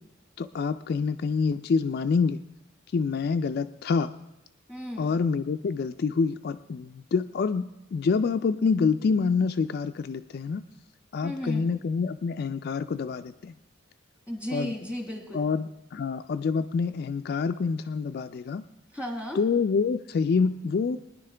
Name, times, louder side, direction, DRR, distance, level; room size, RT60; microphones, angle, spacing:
voice 1, 0.4-2.4 2.9-4.1 5.0-10.6 11.1-13.5 14.5-14.7 15.3-18.6 19.4-21.0, left 5 dB, 50° left, 9 dB, 0.3 m, -27 dB
voice 2, 4.7-5.1 11.2-11.7 14.3-15.4 18.9-19.4, equal, 5° right, 2 dB, 1.6 m, -34 dB
20.0 x 10.5 x 3.3 m, 0.91 s
head